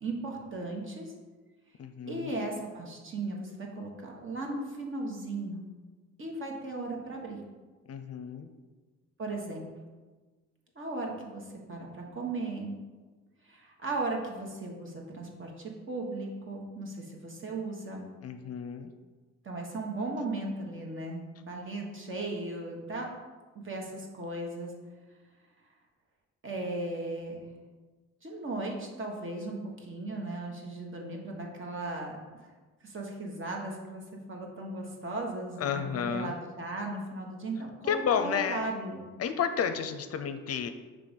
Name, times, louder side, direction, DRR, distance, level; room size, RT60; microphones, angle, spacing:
voice 1, 0.0-1.1 2.1-5.6 6.2-7.4 9.2-9.6 10.7-12.8 13.4-18.1 19.4-23.1 23.6-24.7 26.4-27.5 28.2-32.5 32.8-34.0 34.3-39.0, right 2 dB, 40° right, 0 dB, 1.4 m, -36 dB
voice 2, 1.8-2.3 7.9-8.5 18.2-18.9 35.6-36.3 37.9-38.6 39.2-40.7, left 7 dB, 55° left, 9 dB, 0.5 m, -31 dB
5.8 x 3.4 x 5.2 m, 1.3 s
cardioid pair, 90°, 30 cm